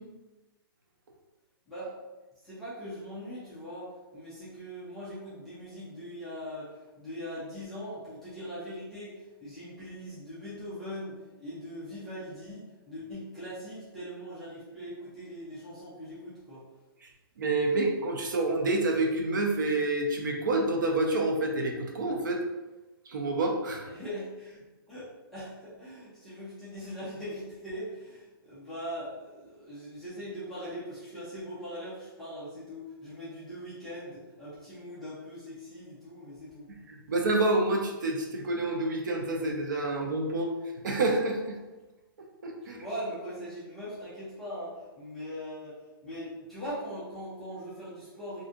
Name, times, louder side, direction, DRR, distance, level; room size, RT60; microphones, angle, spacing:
voice 1, 1.7-2.0 2.4-16.6 23.8-36.7 42.6-48.5, equal, ahead, -13 dB, 0.3 m, -41 dB
voice 2, 17.4-22.4 23.1-23.9 36.9-40.5 40.8-41.6 42.4-42.8, right 2 dB, 55° right, 1 dB, 0.5 m, -28 dB
2.5 x 2.3 x 3.7 m, 1.1 s
hypercardioid pair, 175°, 13 cm